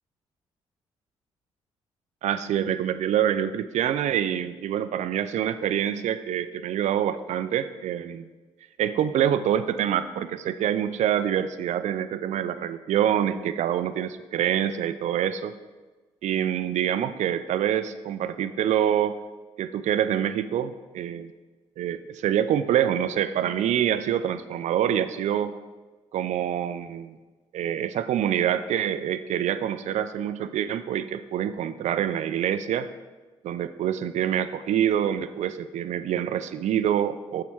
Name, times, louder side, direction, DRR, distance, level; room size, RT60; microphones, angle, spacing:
voice 1, 2.2-8.3 8.8-15.5 16.2-19.2 19.6-21.3 21.8-25.6 26.1-27.2 27.5-32.9 33.4-37.4, right 10 dB, 60° right, 12 dB, 0.5 m, -26 dB
6.9 x 4.8 x 6.2 m, 1.3 s
hypercardioid pair, 45°, 14 cm